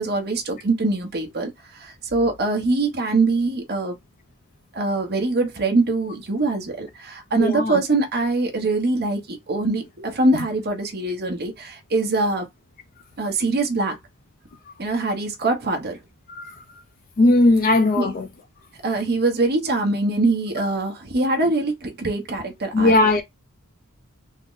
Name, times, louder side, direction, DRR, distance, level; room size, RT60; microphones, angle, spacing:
voice 1, 0.0-4.0 4.7-12.5 13.2-14.0 14.8-16.0 18.0-18.1 18.8-23.0, right 2 dB, 45° right, 0.9 m, -23 dB
voice 2, 7.4-7.8 16.3-16.6 17.2-18.3 20.6-20.7 22.7-23.2, left 2 dB, 40° left, 0.4 m, -18 dB
3.6 x 2.0 x 3.7 m
head